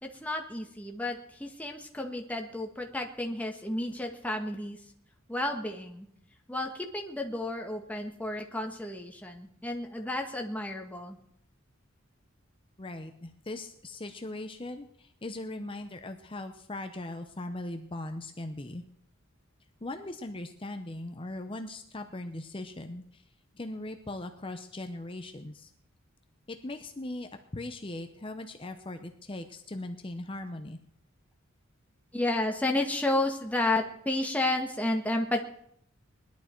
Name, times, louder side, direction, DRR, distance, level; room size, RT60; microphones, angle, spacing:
voice 1, 0.0-4.8 5.3-6.1 6.5-11.2 32.1-35.5, left 2 dB, 5° left, 2 dB, 1.5 m, -32 dB
voice 2, 12.8-18.8 19.8-23.2 23.5-25.7 26.5-30.8, left 2 dB, 25° left, 6 dB, 0.7 m, -39 dB
20.0 x 11.5 x 4.5 m, 0.71 s
head